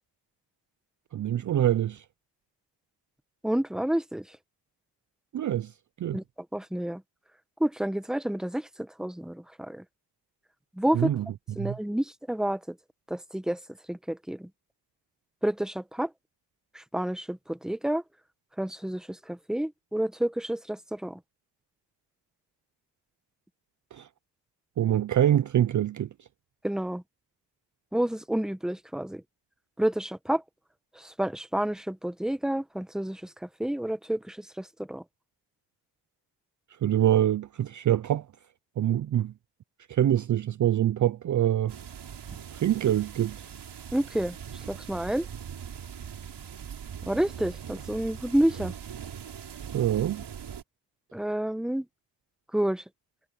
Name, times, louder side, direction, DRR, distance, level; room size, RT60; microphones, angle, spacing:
voice 1, 1.1-2.0 5.3-5.7 6.0-6.2 10.9-11.3 11.6-11.8 23.9-24.1 24.8-26.1 36.8-38.3 38.8-39.3 39.9-41.8 42.5-43.4 49.7-50.2, right 11 dB, 45° right, 0.5 m, -25 dB
voice 2, 3.4-4.2 6.1-6.2 6.5-7.0 7.6-9.8 10.8-11.1 11.6-12.7 13.1-13.6 13.9-14.5 15.4-16.1 16.7-18.0 18.6-21.2 26.6-27.0 27.9-29.2 29.8-30.4 31.0-33.3 33.6-35.0 43.9-44.4 44.7-45.3 47.1-48.7 51.1-51.9 52.5-52.8, right 1 dB, ahead, 1.0 m, -29 dB
sound 1, 41.7-50.6, right 8 dB, 65° right, 5.6 m, -41 dB
cardioid pair, 90°, 43 cm